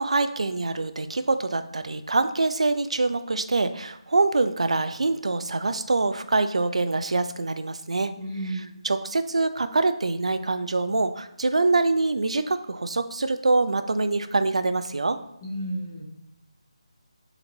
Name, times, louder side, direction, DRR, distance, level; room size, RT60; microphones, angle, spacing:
voice 1, 0.0-8.1 8.4-15.2, right 3 dB, 80° right, 10 dB, 0.3 m, -25 dB
voice 2, 8.2-8.7 15.4-16.0, right 1 dB, 25° left, -5 dB, 1.3 m, -32 dB
4.3 x 3.9 x 2.7 m, 0.82 s
figure-of-eight pair, 170°, 3 cm